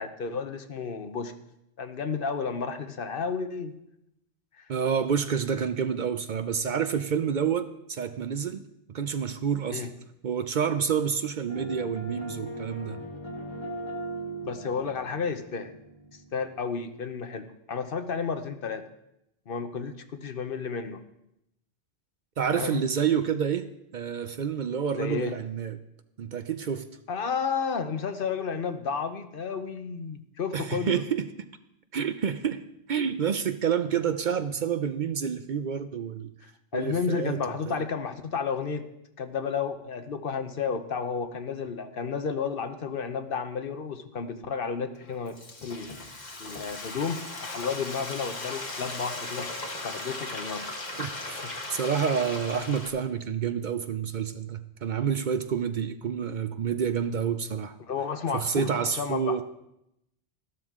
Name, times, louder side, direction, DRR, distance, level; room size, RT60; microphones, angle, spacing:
voice 1, 0.0-1.3 1.8-3.7 4.6-4.7 9.7-9.9 14.4-15.7 16.3-18.8 19.5-21.0 22.5-22.8 24.9-25.4 27.1-31.0 36.7-38.9 39.2-45.4 45.6-45.9 46.4-49.5 49.8-50.6 51.4-51.5 57.9-59.4, left 5 dB, 60° left, 9 dB, 1.0 m, -32 dB
voice 2, 4.7-8.6 8.9-9.9 10.2-13.0 22.4-23.7 23.9-25.8 26.2-26.8 30.5-31.2 31.9-32.6 32.9-36.3 36.7-37.4 37.7-37.8 51.0-51.4 51.7-57.8 58.3-59.4, right 7 dB, 55° right, 10 dB, 0.6 m, -28 dB
sound 1, 11.5-16.8, right 1 dB, 25° left, 1.5 m, -39 dB
Frying (food), 45.0-52.9, left 2 dB, 45° left, 1.4 m, -37 dB
13.5 x 12.5 x 3.7 m, 0.82 s
omnidirectional pair, 1.0 m